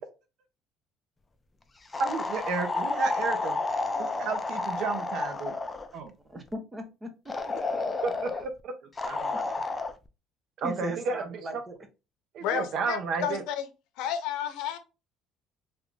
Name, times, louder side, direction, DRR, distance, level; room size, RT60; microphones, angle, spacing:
sound 1, 1.9-5.9 7.3-8.4 9.0-9.9, left 3 dB, 15° left, 0.4 m, -31 dB
voice 1, 2.0-3.6 4.0-5.6 5.9-6.1 8.0-8.7 9.0-9.4 10.6-11.6 12.3-13.4, right 4 dB, 60° right, 0.6 m, -32 dB
voice 2, 6.3-7.8 10.6-11.8, equal, 15° right, 0.7 m, -39 dB
voice 3, 12.4-13.7 14.0-14.8, left 9 dB, 80° left, 0.6 m, -31 dB
3.2 x 2.5 x 3.1 m
cardioid pair, 130°, 0 cm